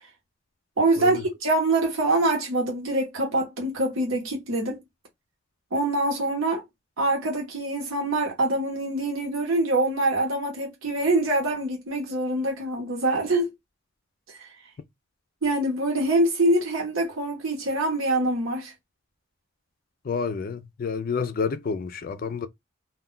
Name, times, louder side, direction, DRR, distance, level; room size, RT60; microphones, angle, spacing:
voice 1, 0.8-4.8 5.7-6.6 7.0-13.5 14.4-14.5 15.4-18.7, right 2 dB, 80° right, 0.9 m, -24 dB
voice 2, 20.0-22.5, left 5 dB, 45° left, 0.3 m, -29 dB
2.2 x 2.2 x 3.7 m
head